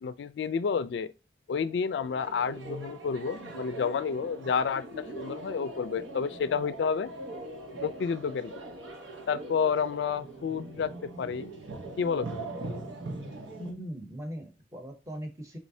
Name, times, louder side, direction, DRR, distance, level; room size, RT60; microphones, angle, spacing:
voice 1, 0.0-1.1 1.5-4.8 5.1-7.1 7.8-8.5 9.3-11.5 12.0-12.5, left 6 dB, 65° left, 0.3 m, -30 dB
sound 1, 1.7-13.7, right 2 dB, 90° right, 0.9 m, -41 dB
voice 2, 13.6-15.6, equal, 15° right, 0.8 m, -40 dB
4.8 x 3.2 x 2.6 m
head